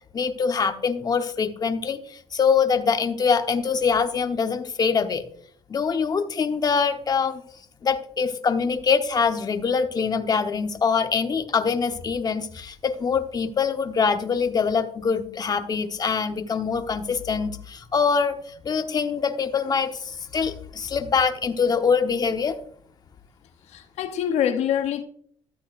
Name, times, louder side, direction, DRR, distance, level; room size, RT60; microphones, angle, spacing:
voice 1, 0.1-5.2 5.7-7.4 7.8-22.6, left 5 dB, 35° left, 1.0 m, -24 dB
voice 2, 23.7-25.0, left 9 dB, 70° left, 0.8 m, -25 dB
13.5 x 8.3 x 2.5 m
cardioid pair, 100°, 12 cm